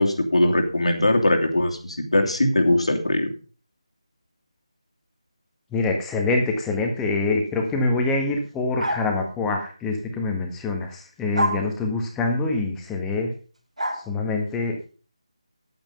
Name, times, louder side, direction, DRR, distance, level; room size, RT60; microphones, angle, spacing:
voice 1, 0.0-3.3, left 1 dB, 65° left, 3 dB, 2.9 m, -21 dB
voice 2, 5.7-13.3 13.9-14.8, left 3 dB, 5° left, 2 dB, 1.5 m, -25 dB
sound 1, 8.8-9.2 11.4-11.7 13.8-14.0, right 1 dB, 85° right, 2.3 m, -25 dB
10.5 x 9.1 x 5.4 m, 0.39 s
figure-of-eight pair, 160°, 3 cm